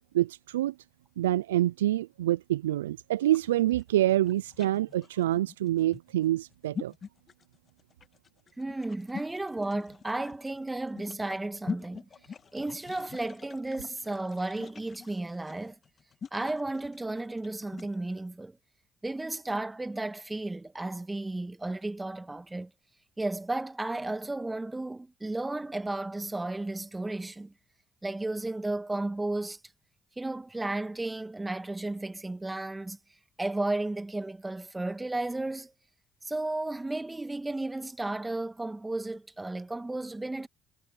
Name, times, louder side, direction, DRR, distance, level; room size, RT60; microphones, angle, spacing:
voice 1, 0.1-0.7 1.2-6.9, right 14 dB, 85° right, 0.4 m, -26 dB
sound 1, 3.2-17.9, left 6 dB, 45° left, 1.8 m, -44 dB
voice 2, 8.6-12.1 12.5-15.8 16.3-18.6 19.0-22.7 23.2-27.5 28.0-29.6 30.2-33.0 33.4-35.7 36.2-40.5, right 2 dB, 15° right, 2.0 m, -33 dB
hypercardioid pair, 50°, 0 cm